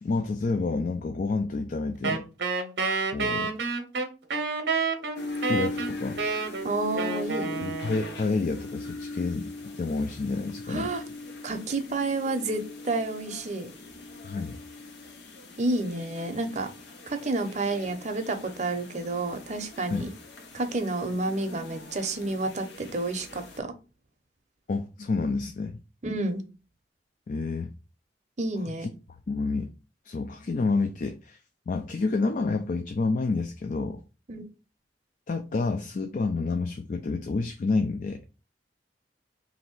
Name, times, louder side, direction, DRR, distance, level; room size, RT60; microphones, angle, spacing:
voice 1, 0.0-2.2 3.1-3.6 5.5-6.2 7.6-10.9 14.2-14.6 19.9-20.0 24.7-25.8 27.3-27.7 28.8-28.9 29.3-29.7 30.0-31.4 31.7-34.0 35.3-38.2, left 3 dB, 45° left, 0.4 m, -29 dB
Wind instrument woodwind instrument, 2.0-8.3, right 4 dB, 75° right, 0.7 m, -29 dB
sound 1, 5.1-23.6, left 2 dB, 75° left, 0.7 m, -41 dB
voice 2, 6.6-7.7 10.7-11.0 11.4-13.7 15.6-16.7 17.1-20.1 20.5-23.7 26.0-26.4 28.4-28.9 34.3-34.5, right 2 dB, 40° right, 0.6 m, -30 dB
3.0 x 2.8 x 4.3 m
head